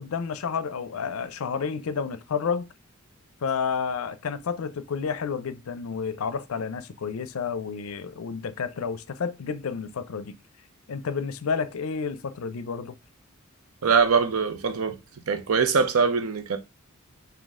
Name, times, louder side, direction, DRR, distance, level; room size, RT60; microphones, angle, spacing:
voice 1, 0.0-2.7 3.4-10.3 10.9-13.0, left 6 dB, 70° left, 0.5 m, -30 dB
voice 2, 13.8-15.0 15.3-16.6, right 5 dB, 85° right, 0.6 m, -22 dB
4.0 x 2.7 x 3.5 m
head